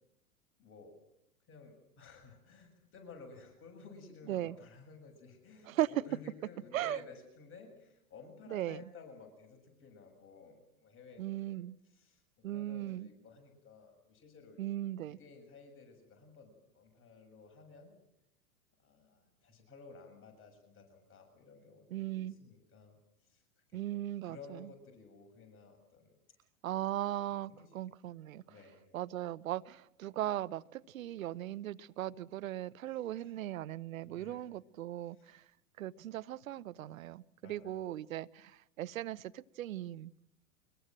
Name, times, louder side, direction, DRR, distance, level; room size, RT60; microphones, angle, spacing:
voice 1, 0.6-1.0 1.5-11.6 11.9-12.2 12.5-14.6 15.1-17.9 18.8-23.0 23.2-23.4 23.7-26.1 27.2-27.7 28.5-29.0 33.2-33.3 34.0-34.4 35.2-35.4 37.4-37.9, left 4 dB, 30° left, 3 dB, 7.3 m, -55 dB
voice 2, 11.2-11.8 12.4-13.1 14.6-15.2 21.9-22.4 23.7-24.7 26.6-28.4 28.9-35.4 35.8-40.1, right 13 dB, 65° right, 18 dB, 0.9 m, -38 dB
24.5 x 22.0 x 7.6 m, 0.79 s
hypercardioid pair, 105°, 44 cm